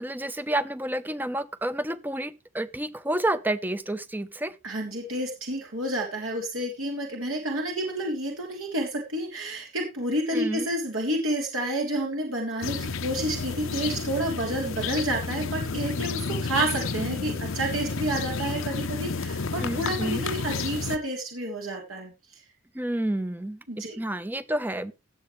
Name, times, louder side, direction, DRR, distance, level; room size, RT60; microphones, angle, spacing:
voice 1, 0.0-4.6 10.3-10.7 19.6-20.3 22.7-23.6 24.0-24.9, right 1 dB, 10° right, 0.6 m, -29 dB
voice 2, 4.6-22.4 23.7-24.0, right 1 dB, 80° right, 3.3 m, -30 dB
sound 1, 12.6-21.0, left 4 dB, 75° left, 0.8 m, -31 dB
17.0 x 7.8 x 3.2 m
head